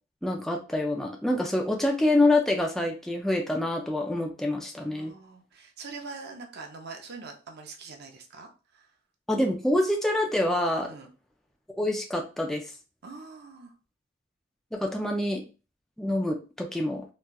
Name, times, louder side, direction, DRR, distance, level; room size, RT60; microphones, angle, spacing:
voice 1, 0.2-5.1 9.3-10.9 11.8-12.6 14.7-15.4 16.0-17.1, left 1 dB, ahead, 1 dB, 0.4 m, -26 dB
voice 2, 4.9-8.9 10.8-11.1 13.0-13.7, right 4 dB, 55° right, 3 dB, 0.6 m, -43 dB
4.0 x 2.3 x 2.3 m, 0.33 s
head